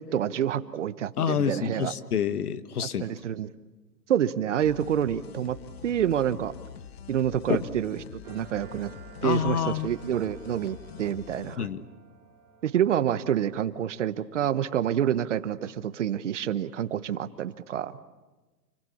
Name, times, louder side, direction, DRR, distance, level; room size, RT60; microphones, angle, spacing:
voice 1, 0.0-1.9 2.8-3.5 4.1-5.6 5.8-6.5 7.1-8.9 9.2-11.7 12.6-18.0, right 10 dB, 45° right, 14 dB, 1.1 m, -28 dB
voice 2, 1.2-3.1 7.5-7.7 9.2-9.9 11.5-11.8, left 8 dB, 65° left, 13 dB, 1.6 m, -27 dB
sound 1, 4.6-11.6, left 8 dB, 40° left, 0.9 m, -45 dB
sound 2, 8.2-13.6, right 7 dB, 15° right, 2.2 m, -52 dB
28.5 x 21.5 x 8.5 m, 1.2 s
hypercardioid pair, 155°, 49 cm